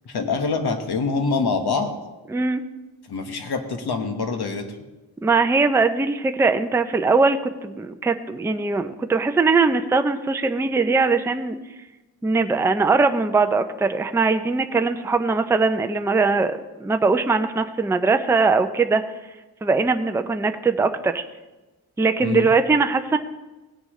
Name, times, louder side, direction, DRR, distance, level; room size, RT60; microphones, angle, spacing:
voice 1, 0.0-1.9 3.1-4.7 22.2-22.5, left 4 dB, 75° left, 6 dB, 1.4 m, -25 dB
voice 2, 2.3-2.6 5.2-11.6 12.2-19.0 19.6-21.2 22.0-23.2, right 4 dB, 5° right, 7 dB, 0.4 m, -21 dB
17.5 x 10.0 x 3.1 m, 1.1 s
wide cardioid pair, 170°, 39 cm